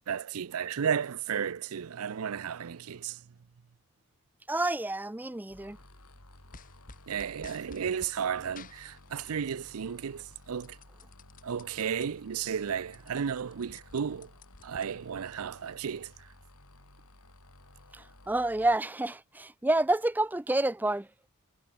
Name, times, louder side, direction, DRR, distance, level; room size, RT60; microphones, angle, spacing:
voice 1, 0.1-3.2 7.1-10.8 11.4-14.3 14.6-16.3, right 7 dB, 75° right, 0.5 m, -33 dB
voice 2, 4.5-5.8 17.9-21.1, right 2 dB, 10° right, 0.4 m, -29 dB
sound 1, 5.5-18.8, left 1 dB, 90° left, 8.0 m, -55 dB
sound 2, 6.5-8.2 8.6-9.7 10.0-12.1 12.5-12.6 12.8-15.2, left 4 dB, 35° left, 2.1 m, -52 dB
head